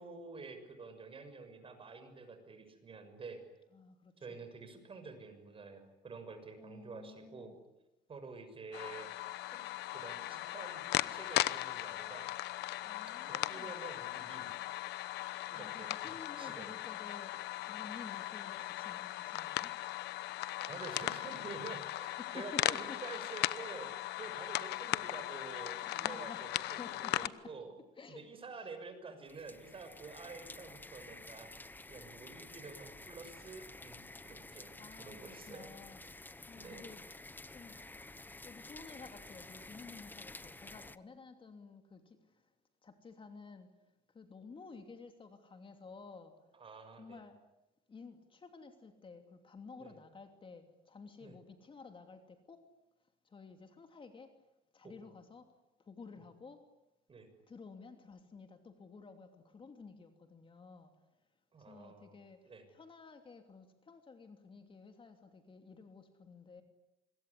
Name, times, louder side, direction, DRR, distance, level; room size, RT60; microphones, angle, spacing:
voice 1, 0.0-3.4 4.2-7.6 8.1-9.1 9.5-9.6 9.9-12.3 13.3-14.5 15.5-16.7 20.6-23.9 24.2-27.7 28.1-31.5 31.9-35.8 36.6-36.9 46.5-47.3 49.8-50.0 51.2-51.4 54.8-55.2 56.2-56.3 57.1-57.3 61.5-62.7, right 4 dB, 30° right, 8 dB, 6.6 m, -49 dB
voice 2, 3.8-4.4 6.6-7.6 12.8-13.8 15.6-17.4 17.7-19.7 22.0-22.8 24.4-25.0 25.9-27.5 28.0-28.7 34.8-36.0 36.5-37.1 37.5-37.8 38.4-42.0 42.8-43.7 44.1-46.3 47.0-47.4 47.9-52.6 53.3-54.3 54.7-55.5 55.9-56.6 57.5-60.9 61.7-62.4 62.7-66.6, left 4 dB, 30° left, 7 dB, 2.9 m, -53 dB
sound 1, 8.7-27.3, left 16 dB, 80° left, 1.0 m, -38 dB
sound 2, 29.3-41.0, left 2 dB, 10° left, 1.0 m, -51 dB
25.5 x 22.0 x 10.0 m, 0.91 s
cardioid pair, 110°, 17 cm